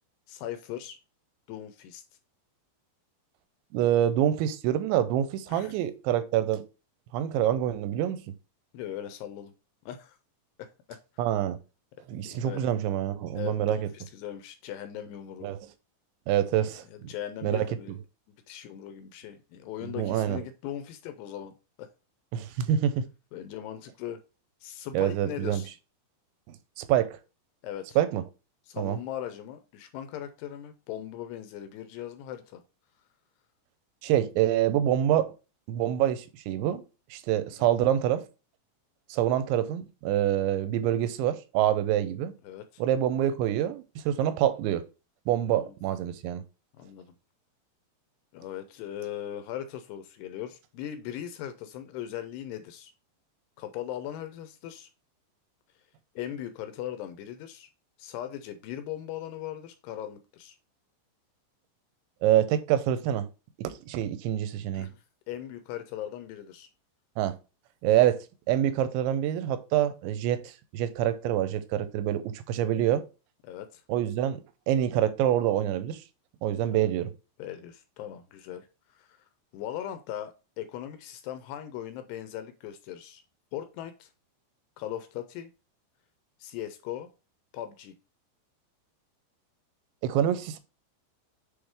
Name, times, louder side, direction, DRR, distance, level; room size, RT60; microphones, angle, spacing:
voice 1, 0.3-1.0 1.5-2.0 5.5-5.7 8.7-9.5 9.9-10.2 10.6-11.0 12.3-12.7 13.3-15.5 16.7-17.9 18.5-21.9 23.3-24.2 24.6-25.7 27.6-27.9 28.7-32.6 37.4-37.7 42.4-42.8 45.5-45.7 46.8-47.1 48.3-52.9 53.6-54.9 56.2-57.7 58.0-60.6 64.7-66.7 73.4-73.8 76.7-76.9 77.4-79.2 79.5-83.2 83.5-84.1 84.8-85.5 86.4-87.1 87.5-88.0, left 11 dB, 80° left, 2.5 m, -39 dB
voice 2, 3.7-6.6 7.1-8.2 11.2-11.6 12.1-13.9 15.4-15.6 16.3-17.1 17.4-18.0 20.0-20.4 22.3-23.1 24.9-25.6 26.5-27.2 28.0-28.2 28.8-29.0 34.0-35.3 35.7-36.8 37.1-38.3 39.1-42.3 42.8-44.8 45.3-46.4 62.2-63.3 63.6-64.9 67.2-67.4 67.8-68.2 68.5-73.0 73.9-74.4 74.7-76.0 76.4-77.1 90.0-90.6, right 11 dB, 90° right, 3.0 m, -26 dB
8.0 x 3.4 x 3.4 m
omnidirectional pair, 5.2 m